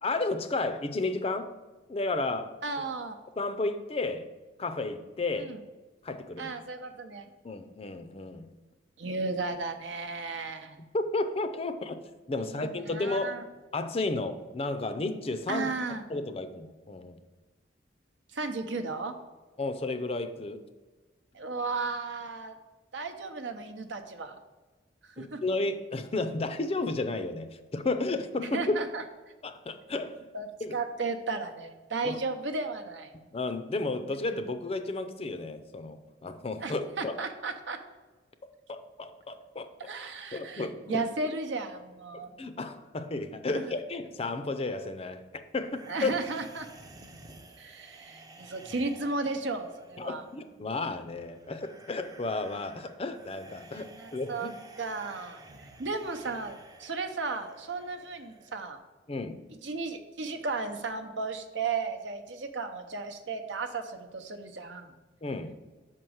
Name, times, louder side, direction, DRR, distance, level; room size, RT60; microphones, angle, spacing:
voice 1, 0.0-1.5 1.9-2.5 3.4-4.3 4.6-5.5 6.0-6.5 7.4-8.5 10.9-12.0 12.3-13.4 13.7-15.7 16.1-17.2 19.6-20.6 25.2-28.8 29.4-30.3 30.6-30.8 32.0-32.2 33.3-37.1 38.7-39.7 40.3-41.0 42.4-46.2 50.0-54.3 59.1-59.5 65.2-65.6, left 2 dB, 30° left, 9 dB, 0.4 m, -32 dB
voice 2, 2.6-3.1 5.4-5.6 6.4-7.3 9.0-10.8 12.4-13.4 15.5-16.0 18.3-19.1 21.3-22.6 22.9-24.4 25.0-25.4 28.4-29.0 30.3-33.1 36.6-37.8 39.8-42.3 43.5-43.6 45.9-46.7 47.6-50.2 53.7-58.8 59.6-64.9, right 3 dB, 75° right, 6 dB, 0.8 m, -35 dB
sound 1, 45.6-58.6, right 2 dB, 20° right, 0.5 m, -52 dB
6.0 x 4.5 x 6.3 m, 1.2 s
head